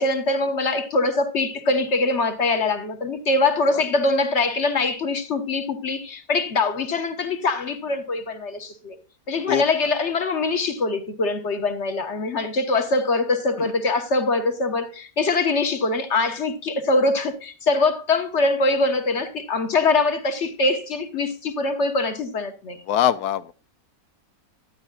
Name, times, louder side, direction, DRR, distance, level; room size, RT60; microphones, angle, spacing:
voice 1, 0.0-9.0 9.3-22.8, left 3 dB, 50° left, 1.6 m, -23 dB
voice 2, 22.9-23.5, left 11 dB, 90° left, 1.3 m, -22 dB
12.0 x 9.8 x 2.4 m
omnidirectional pair, 1.6 m